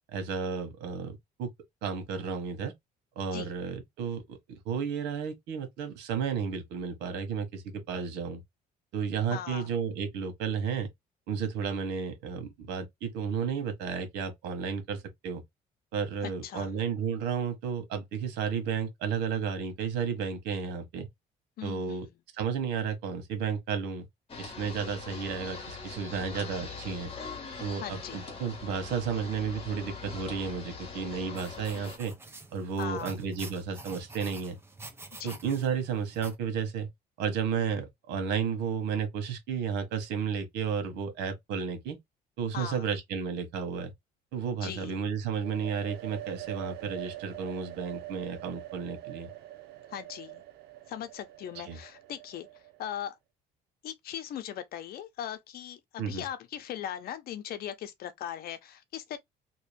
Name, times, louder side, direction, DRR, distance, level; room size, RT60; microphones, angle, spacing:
voice 1, 0.1-1.5 1.8-2.7 3.1-8.4 8.9-10.9 11.3-15.4 15.9-21.1 21.6-22.1 22.4-24.1 24.4-27.1 27.6-32.1 32.5-34.6 35.2-36.9 37.2-42.0 42.4-43.9 44.3-49.3 51.5-51.8 56.0-56.2, right 6 dB, 90° right, 1.3 m, -32 dB
voice 2, 9.3-9.7 16.4-16.7 21.6-22.1 27.8-28.2 32.8-33.2 35.2-35.4 42.5-42.9 44.6-45.0 49.9-50.4 50.9-52.5 52.8-53.2 53.8-59.2, left 10 dB, 65° left, 0.8 m, -39 dB
sound 1, 24.3-32.0, left 4 dB, 35° left, 1.5 m, -42 dB
sound 2, 31.3-36.3, right 2 dB, 15° right, 0.9 m, -47 dB
sound 3, 45.4-53.0, right 15 dB, 75° right, 0.7 m, -44 dB
3.0 x 2.7 x 3.3 m
cardioid pair, 110°, 17 cm